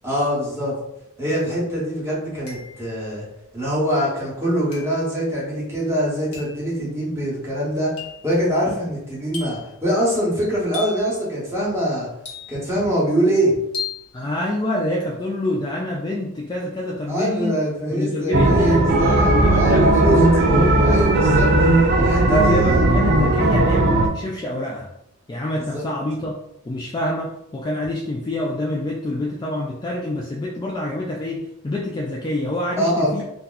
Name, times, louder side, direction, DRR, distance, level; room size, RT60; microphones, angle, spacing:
voice 1, 0.0-0.8 1.2-3.2 3.5-8.0 8.2-12.1 12.5-13.6 17.1-21.5 22.0-22.9 25.6-25.8 32.8-33.2, equal, 10° right, -7 dB, 1.2 m, -23 dB
sound 1, 1.3-1.4 2.5-3.0 4.7-5.1 6.3-6.6 8.0-8.3 9.3-9.8 10.7-11.1 12.3-12.8 13.7-14.1, left 6 dB, 65° left, 0.9 m, -34 dB
voice 2, 14.1-17.6 17.9-20.9 22.3-24.9 25.3-26.3 26.6-33.2, left 1 dB, 20° left, -2 dB, 0.3 m, -26 dB
sound 2, 18.3-24.1, right 2 dB, 50° right, 0.4 m, -16 dB
2.8 x 2.3 x 3.8 m, 0.81 s
head